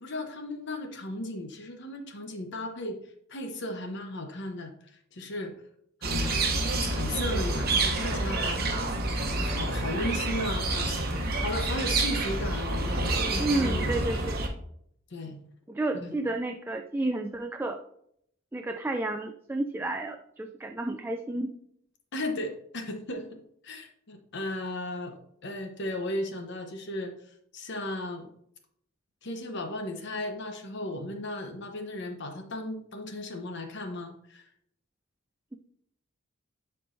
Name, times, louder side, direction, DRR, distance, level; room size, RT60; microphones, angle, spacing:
voice 1, 0.0-3.0 3.3-4.7 5.1-5.5 6.0-6.5 6.8-8.9 9.2-11.0 11.4-13.9 15.1-15.4 15.9-16.2 22.1-27.1 27.5-28.3 29.2-34.4, left 1 dB, 55° left, 5 dB, 1.0 m, -35 dB
sound 1, 6.0-14.5, right 2 dB, 50° right, 1.0 m, -28 dB
voice 2, 13.4-14.4 15.7-17.8 18.5-21.5, right 2 dB, 10° right, 4 dB, 0.3 m, -31 dB
10.5 x 4.5 x 2.7 m, 0.71 s
head